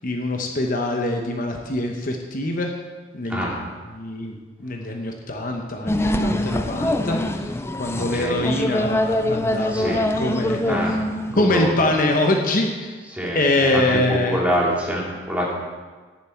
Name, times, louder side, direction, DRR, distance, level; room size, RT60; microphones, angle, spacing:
voice 1, 0.0-2.7 3.1-3.6 3.9-7.5 7.8-11.0 11.3-13.0 13.3-14.4, left 2 dB, 50° left, 3 dB, 1.0 m, -24 dB
sound 1, 5.9-11.4, left 1 dB, 15° left, 0.5 m, -24 dB
voice 2, 7.9-8.4 9.7-10.0 10.7-10.9 11.3-11.7 13.1-13.8 14.1-15.5, equal, 10° right, -4 dB, 2.6 m, -25 dB
17.5 x 7.3 x 4.5 m, 1.4 s
head